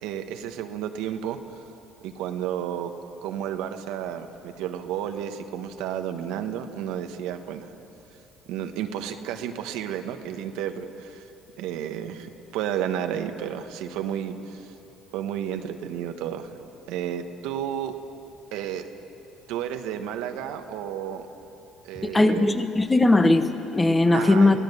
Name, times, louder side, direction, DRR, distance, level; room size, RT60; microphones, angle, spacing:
voice 1, 0.0-1.4 2.0-2.9 3.2-7.7 8.5-11.2 11.6-14.7 15.1-16.5 16.9-17.9 18.5-18.9 19.5-21.3 21.8-22.6 24.1-24.6, right 9 dB, 80° right, 7 dB, 1.2 m, -32 dB
voice 2, 22.0-24.6, left 2 dB, 15° left, 8 dB, 1.3 m, -19 dB
24.0 x 16.5 x 6.9 m, 2.9 s
supercardioid pair, 90°, 0 cm